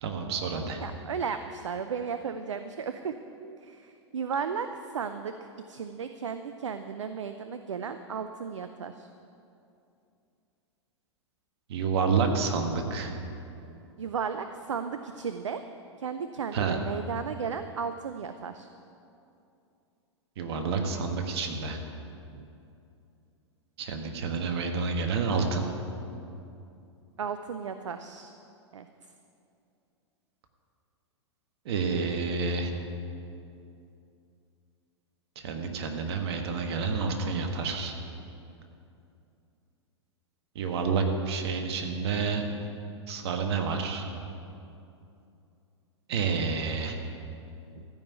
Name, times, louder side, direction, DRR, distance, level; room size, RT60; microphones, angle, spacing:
voice 1, 0.0-0.8 11.7-13.1 16.5-16.8 20.4-21.8 23.8-25.7 31.6-32.7 35.3-37.9 40.5-42.4 43.1-44.0 46.1-47.0, right 5 dB, 60° right, 4 dB, 1.6 m, -29 dB
voice 2, 0.8-3.1 3.4-9.1 14.0-15.6 16.0-18.7 22.3-22.4 27.2-28.3 28.7-28.9 47.7-47.9, right 6 dB, 80° right, 9 dB, 0.6 m, -35 dB
14.5 x 5.6 x 9.2 m, 2.7 s
hypercardioid pair, 105°, 15 cm